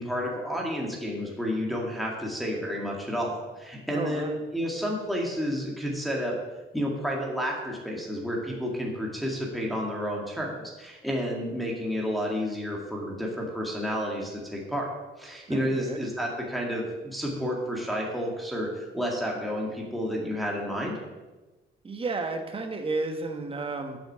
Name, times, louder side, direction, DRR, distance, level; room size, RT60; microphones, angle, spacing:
voice 1, 0.0-6.3 6.7-14.9 15.2-21.0, equal, ahead, -3 dB, 2.1 m, -31 dB
voice 2, 3.9-4.4 15.5-16.0 21.8-24.0, right 3 dB, 25° right, 5 dB, 1.4 m, -32 dB
8.2 x 6.3 x 6.9 m, 1.2 s
cardioid pair, 110°, 21 cm